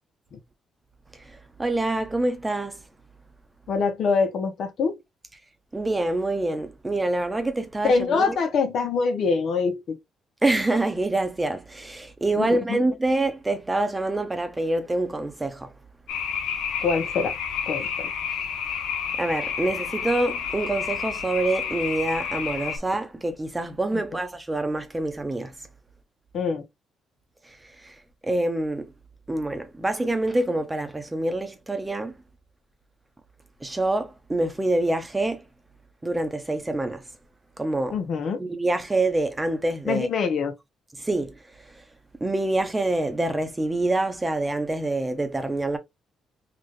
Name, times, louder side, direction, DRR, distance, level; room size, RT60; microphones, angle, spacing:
voice 1, 1.3-2.8 5.7-8.4 10.4-15.7 19.2-25.5 27.8-27.9 28.2-28.9 29.3-32.1 33.6-35.4 36.0-37.0 37.6-38.0 38.4-40.1 41.0-41.3 42.2-45.8, right 2 dB, 15° right, 0.8 m, -26 dB
voice 2, 3.7-5.0 7.8-10.0 12.4-12.8 16.8-17.4 17.7-18.1 23.9-24.0 26.3-26.6 37.9-38.4 39.9-40.5, left 5 dB, 65° left, 0.9 m, -24 dB
sound 1, 16.1-22.8, left 7 dB, 90° left, 0.9 m, -30 dB
3.9 x 2.5 x 3.1 m
cardioid pair, 90°, 0 cm